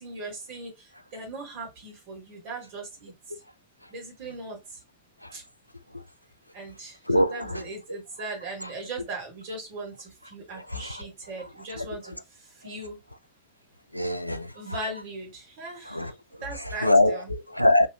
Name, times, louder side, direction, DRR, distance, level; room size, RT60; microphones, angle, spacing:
voice 1, 0.0-3.1 3.9-4.8 5.3-5.4 6.5-13.0 14.5-16.1 16.4-17.3, right 2 dB, 45° right, 1.8 m, -39 dB
voice 2, 7.1-7.6 13.9-14.5 15.9-16.1 16.8-17.9, left 1 dB, 90° left, 0.3 m, -22 dB
3.0 x 2.7 x 2.7 m
figure-of-eight pair, 90°, 0 cm